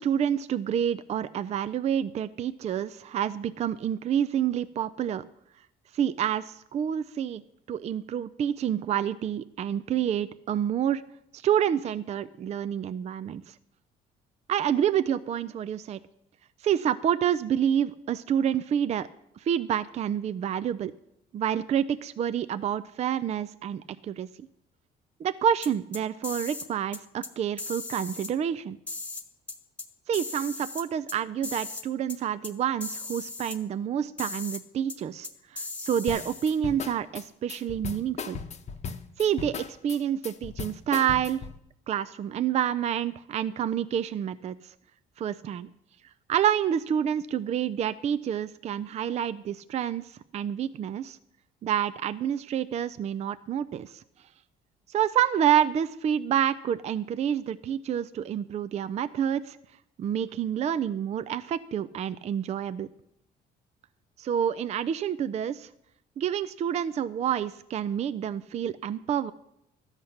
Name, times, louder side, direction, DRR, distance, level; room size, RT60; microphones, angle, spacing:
voice 1, 0.0-5.3 5.9-7.4 7.7-11.0 11.3-13.5 14.5-16.0 16.6-19.1 19.4-20.9 21.3-24.3 25.2-28.8 30.1-38.4 39.2-41.4 41.9-44.7 45.2-45.7 46.3-51.2 51.6-53.9 54.9-59.6 60.0-62.9 64.2-65.7 66.2-69.3, right 9 dB, 40° right, 14 dB, 0.4 m, -28 dB
sound 1, 25.6-26.7 26.9-27.3 27.6-28.3 28.9-29.9 30.1-31.2 31.4-32.2 32.4-32.5 32.8-33.6 34.2-34.6 34.9-35.0 35.2-36.6, left 3 dB, 10° left, 1.2 m, -37 dB
sound 2, 36.1-41.6, left 6 dB, 40° left, 0.9 m, -37 dB
12.5 x 8.0 x 5.8 m, 0.80 s
cardioid pair, 110°, 17 cm